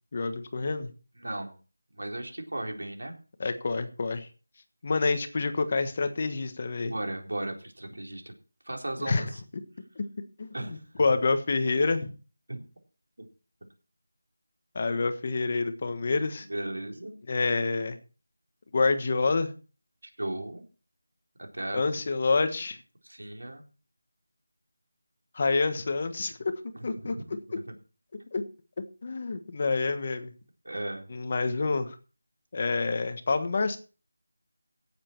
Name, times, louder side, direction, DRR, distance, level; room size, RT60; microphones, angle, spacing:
voice 1, 0.1-0.9 3.4-4.3 4.8-6.9 9.0-9.3 10.0-10.1 10.4-12.1 14.7-16.5 17.3-18.0 18.7-19.5 21.7-22.8 25.3-26.4 26.8-27.2 28.3-28.4 29.0-30.3 31.1-32.0 32.5-33.8, left 3 dB, 30° left, 9 dB, 1.3 m, -27 dB
voice 2, 1.2-1.5 1.9-3.1 6.8-8.3 8.7-9.4 10.5-10.8 12.5-12.6 13.2-13.3 16.5-17.2 20.2-20.6 21.5-21.8 23.0-23.6 26.7-26.9 27.3-27.6 30.6-31.1, right 1 dB, 85° right, 2 dB, 4.0 m, -36 dB
17.0 x 7.6 x 4.5 m, 0.36 s
figure-of-eight pair, 175°, 0 cm